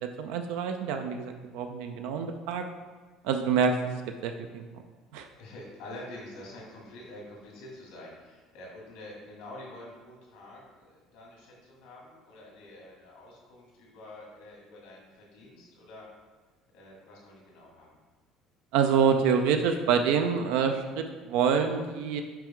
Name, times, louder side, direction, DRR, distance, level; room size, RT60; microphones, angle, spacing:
voice 1, 0.0-2.6 3.2-3.7 4.2-4.6 5.1-5.3 18.7-22.2, right 6 dB, 90° right, 6 dB, 0.4 m, -26 dB
voice 2, 5.4-16.1 16.7-18.0, left 1 dB, 90° left, -3 dB, 1.9 m, -47 dB
5.8 x 4.6 x 3.6 m, 1.3 s
cardioid pair, 145°, 0 cm